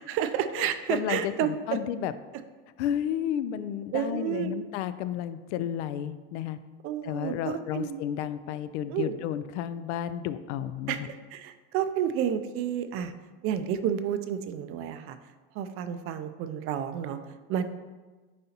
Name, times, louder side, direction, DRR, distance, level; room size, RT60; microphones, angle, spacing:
voice 1, 0.0-1.8 3.9-4.6 6.8-8.0 8.9-9.2 10.9-13.1 13.4-15.2 15.5-17.6, right 9 dB, 40° right, 10 dB, 0.4 m, -30 dB
voice 2, 0.6-2.1 2.8-6.6 7.0-10.9, left 10 dB, 80° left, 13 dB, 0.5 m, -32 dB
9.5 x 4.0 x 2.8 m, 1.3 s
supercardioid pair, 135°, 34 cm